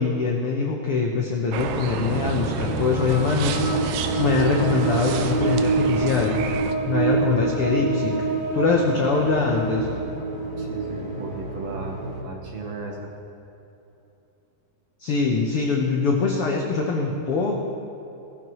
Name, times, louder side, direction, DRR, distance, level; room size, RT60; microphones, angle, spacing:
voice 1, 0.0-3.6 4.2-6.5 6.9-8.2 8.5-9.9 15.0-17.6, left 4 dB, 75° left, 0 dB, 1.3 m, -23 dB
sound 1, 1.5-6.7, right 7 dB, 80° right, 2.3 m, -32 dB
sound 2, 2.0-12.2, right 3 dB, 30° right, 1.8 m, -26 dB
voice 2, 10.6-13.1, right 3 dB, 60° right, -1 dB, 1.9 m, -35 dB
17.5 x 14.5 x 3.1 m, 2.9 s
omnidirectional pair, 3.9 m